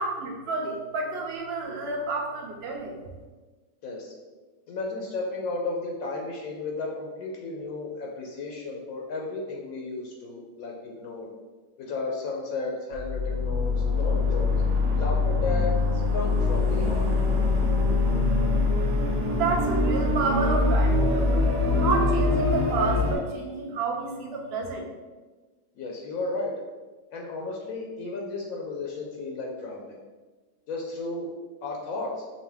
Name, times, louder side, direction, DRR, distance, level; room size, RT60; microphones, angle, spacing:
voice 1, 0.0-3.0 19.3-21.5 21.7-24.8, right 3 dB, 55° right, 1 dB, 0.8 m, -30 dB
voice 2, 3.8-4.1 4.7-11.3 11.8-14.5 14.9-15.7 16.1-17.1 25.8-26.5 27.1-30.0 30.7-31.3 31.6-32.2, left 3 dB, 75° left, -1 dB, 1.0 m, -33 dB
sound 1, 12.9-23.1, left 3 dB, 70° right, 1.1 m, -23 dB
5.2 x 2.3 x 3.4 m, 1.3 s
omnidirectional pair, 1.6 m